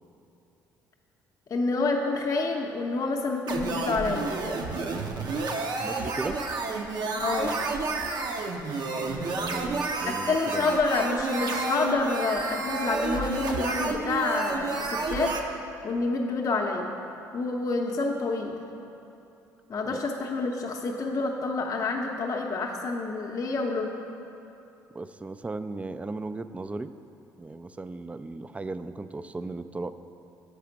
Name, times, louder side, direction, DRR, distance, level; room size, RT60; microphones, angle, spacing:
voice 1, 1.5-4.3 7.2-7.6 10.1-15.3 15.8-16.9 17.3-18.6 19.7-23.9, left 3 dB, 40° left, 0 dB, 0.7 m, -28 dB
sound 1, 3.5-15.4, right 3 dB, 50° right, 0.7 m, -30 dB
voice 2, 5.8-6.4 9.1-10.8 19.9-20.0 24.9-26.9 27.4-29.9, right 3 dB, 15° right, 12 dB, 0.3 m, -36 dB
6.7 x 4.9 x 5.9 m, 2.8 s
hypercardioid pair, 50°, 9 cm